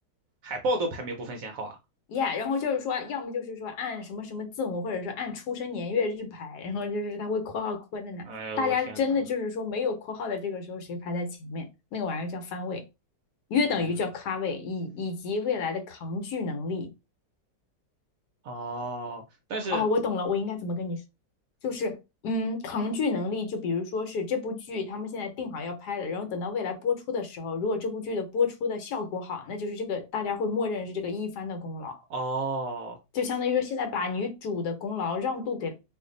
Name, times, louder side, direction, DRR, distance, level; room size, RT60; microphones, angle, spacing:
voice 1, 0.4-1.8 8.2-9.0 18.4-19.2 19.5-19.8 32.1-33.0, right 2 dB, 70° right, 0.8 m, -32 dB
voice 2, 2.1-8.3 8.6-11.7 11.9-12.8 13.5-16.9 19.7-21.0 21.6-32.0 33.1-35.7, left 4 dB, 70° left, 1.2 m, -30 dB
2.6 x 2.5 x 3.7 m
omnidirectional pair, 1.9 m